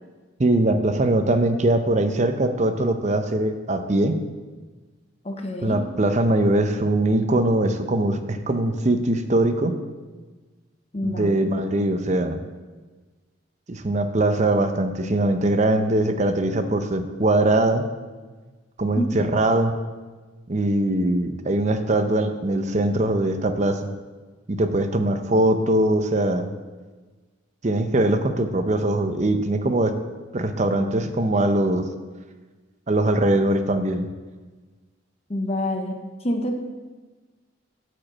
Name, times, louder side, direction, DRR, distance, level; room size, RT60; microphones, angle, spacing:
voice 1, 0.4-4.2 5.6-9.7 11.0-12.4 13.7-17.9 18.8-19.8 20.5-23.9 24.5-26.5 27.6-29.9 30.3-31.9 32.9-34.1, right 1 dB, 35° right, 8 dB, 0.6 m, -21 dB
voice 2, 5.2-5.8 10.9-11.5 18.9-19.1 35.3-36.5, left 1 dB, 30° left, 4 dB, 0.9 m, -27 dB
9.0 x 5.1 x 7.3 m, 1.3 s
head